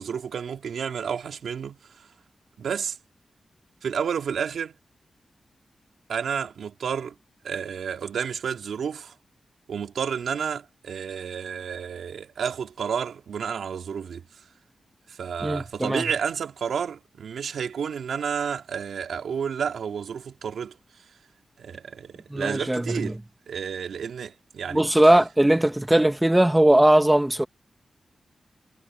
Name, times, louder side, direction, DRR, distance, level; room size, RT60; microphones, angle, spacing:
voice 1, 0.0-1.8 2.6-3.0 3.8-4.7 6.1-7.1 7.4-9.1 9.7-14.2 15.1-20.7 21.6-23.2 23.5-24.8, right 7 dB, 85° right, 2.7 m, -30 dB
voice 2, 15.4-16.0 22.3-23.2 24.7-27.5, right 1 dB, 15° right, 2.3 m, -19 dB
cardioid pair, 60°, 0 cm